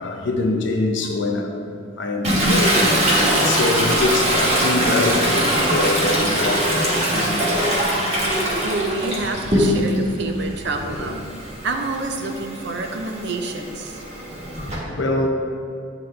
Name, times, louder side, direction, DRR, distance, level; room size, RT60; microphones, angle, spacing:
voice 1, 0.0-1.5 2.0-2.8 3.3-8.1 11.0-11.1 14.1-15.3, left 2 dB, 65° left, 3 dB, 0.6 m, -24 dB
Toilet flush, 2.2-10.1 10.5-14.8, right 1 dB, 35° right, 1.1 m, -21 dB
voice 2, 8.6-11.2 11.6-14.0, right 3 dB, 60° right, 5 dB, 0.5 m, -28 dB
8.0 x 4.0 x 3.3 m, 2.5 s
head